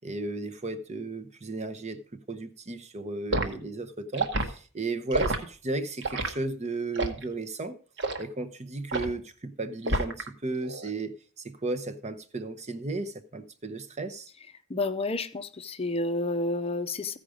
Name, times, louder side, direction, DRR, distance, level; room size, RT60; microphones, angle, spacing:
voice 1, 0.0-7.8 8.2-14.3, right 2 dB, 30° right, 0.8 m, -34 dB
Liquid, 3.3-3.5 4.1-4.5 5.1-5.4 6.0-6.3 6.9-7.2 8.0-8.2 8.9-9.2 9.9-10.3 10.6-10.9, right 2 dB, 55° right, 1.2 m, -28 dB
voice 2, 14.7-17.2, left 2 dB, 25° left, 0.6 m, -30 dB
15.0 x 5.0 x 5.0 m
head